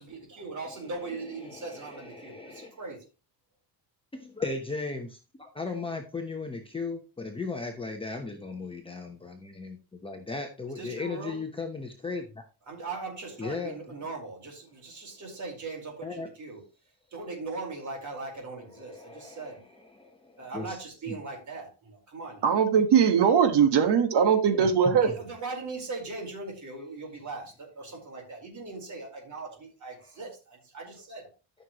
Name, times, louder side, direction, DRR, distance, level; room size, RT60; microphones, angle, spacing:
voice 1, 0.0-3.0 10.8-11.4 12.7-16.6 17.1-19.7 20.4-22.4 25.0-31.2, right 3 dB, 45° right, 4.6 m, -39 dB
voice 2, 0.7-2.8 4.1-12.4 13.4-13.8 16.0-16.3 18.7-20.8 21.1-21.2 24.4-25.2 30.0-30.1, left 4 dB, 15° left, 1.0 m, -37 dB
voice 3, 22.4-25.1, right 7 dB, 75° right, 1.8 m, -21 dB
13.5 x 6.5 x 3.1 m
cardioid pair, 150°, 40 cm